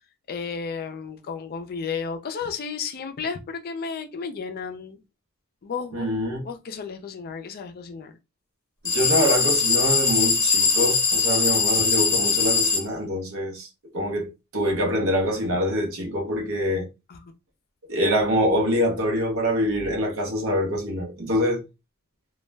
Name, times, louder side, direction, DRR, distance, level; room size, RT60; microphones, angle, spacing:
voice 1, 0.3-5.0 5.6-6.1 6.4-8.1 17.1-17.2, left 5 dB, 45° left, 0.4 m, -33 dB
voice 2, 5.9-6.5 8.8-13.7 13.9-16.9 17.9-21.6, equal, 65° right, 0.7 m, -25 dB
sound 1, 8.8-12.8, left 4 dB, 20° left, 0.9 m, -21 dB
2.2 x 2.0 x 3.3 m
head